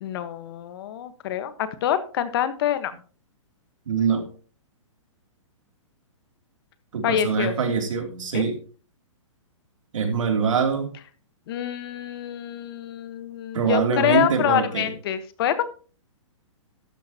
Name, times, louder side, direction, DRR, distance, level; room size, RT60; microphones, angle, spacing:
voice 1, 0.0-2.9 7.0-7.5 8.3-8.4 11.5-15.6, left 10 dB, 45° left, 12 dB, 1.3 m, -26 dB
voice 2, 3.9-4.3 6.9-8.6 9.9-10.9 13.5-14.9, right 6 dB, 75° right, 5 dB, 2.9 m, -24 dB
13.0 x 10.5 x 2.9 m, 0.38 s
hypercardioid pair, 150°, 17 cm